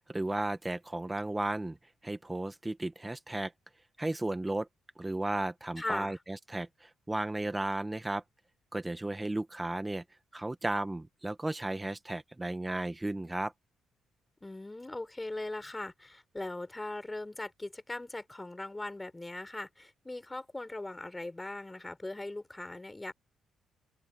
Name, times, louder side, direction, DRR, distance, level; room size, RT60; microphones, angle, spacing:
voice 1, 0.0-1.8 2.0-3.5 4.0-4.7 5.0-8.2 8.7-10.0 10.3-13.5, right 2 dB, 15° right, 1.6 m, -34 dB
voice 2, 5.8-6.2 14.4-23.1, left 2 dB, 15° left, 4.5 m, -40 dB
open air
cardioid pair, 90°, 0 cm